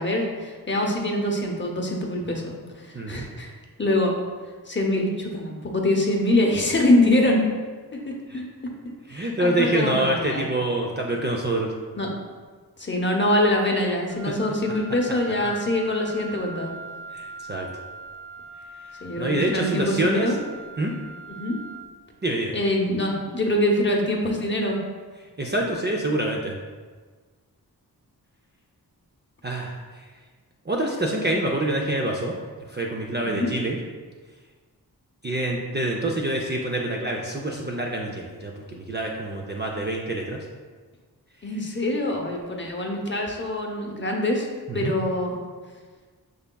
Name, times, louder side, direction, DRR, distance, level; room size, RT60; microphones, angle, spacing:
voice 1, 0.0-3.5 3.8-4.1 4.7-7.4 8.1-8.4 9.1-10.4 11.9-12.1 12.8-16.7 19.0-20.4 21.3-21.6 22.5-24.8 33.2-33.5 41.4-44.5 44.7-45.4, left 1 dB, 30° left, 0 dB, 0.8 m, -24 dB
voice 2, 2.9-3.3 8.3-8.4 9.1-11.7 14.3-14.4 17.1-17.7 19.2-20.3 20.8-20.9 22.2-22.5 25.4-26.6 29.4-30.0 30.7-32.4 32.7-33.8 35.2-40.4 44.7-44.9, right 1 dB, 30° right, -1 dB, 0.4 m, -26 dB
Wind instrument woodwind instrument, 14.1-21.8, right 3 dB, 50° right, 1.3 m, -41 dB
6.4 x 3.4 x 2.2 m, 1.4 s
wide cardioid pair, 85°, 38 cm